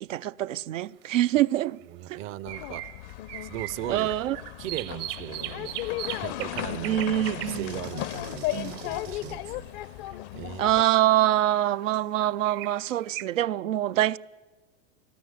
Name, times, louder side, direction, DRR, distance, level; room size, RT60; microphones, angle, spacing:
voice 1, 0.0-1.8 2.1-2.2 3.9-4.4 6.8-7.8 8.5-8.8 10.6-14.2, right 13 dB, 85° right, 0.6 m, -25 dB
sound 1, 1.0-1.1 2.0-10.4 11.7-13.3, right 15 dB, 55° right, 0.8 m, -40 dB
voice 2, 1.9-2.9 3.4-4.1 4.6-9.6 9.9-10.7, right 14 dB, 35° right, 0.5 m, -38 dB
sound 2, 2.5-10.8, left 16 dB, 55° left, 0.7 m, -35 dB
20.0 x 13.5 x 9.8 m
hypercardioid pair, 105°, 37 cm